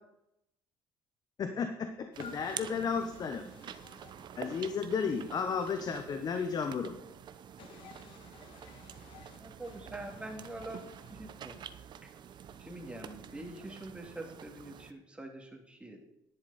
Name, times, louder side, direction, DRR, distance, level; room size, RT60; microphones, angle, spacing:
voice 1, 1.4-3.4 4.4-6.9, left 6 dB, 45° left, 1.1 m, -33 dB
sound 1, 2.1-14.9, right 8 dB, 50° right, 0.9 m, -48 dB
voice 2, 2.2-2.7 3.0-4.7 5.1-5.2 7.6-11.1, left 5 dB, 65° left, 2.3 m, -55 dB
voice 3, 9.4-10.8 11.1-11.6 12.0-12.1 12.6-16.0, right 1 dB, 10° right, 2.6 m, -45 dB
11.0 x 10.5 x 4.3 m
cardioid pair, 95°, 10 cm